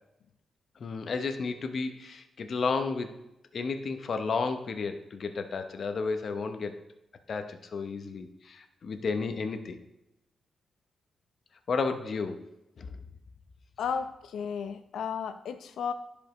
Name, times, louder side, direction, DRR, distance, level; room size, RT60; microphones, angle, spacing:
voice 1, 0.8-3.1 3.5-6.8 7.3-9.8 11.7-12.4 12.8-13.0, left 4 dB, 45° left, 8 dB, 0.8 m, -32 dB
voice 2, 13.8-15.9, left 6 dB, 85° left, 10 dB, 0.6 m, -33 dB
15.0 x 5.2 x 3.1 m, 0.92 s
wide cardioid pair, 160°, 0 cm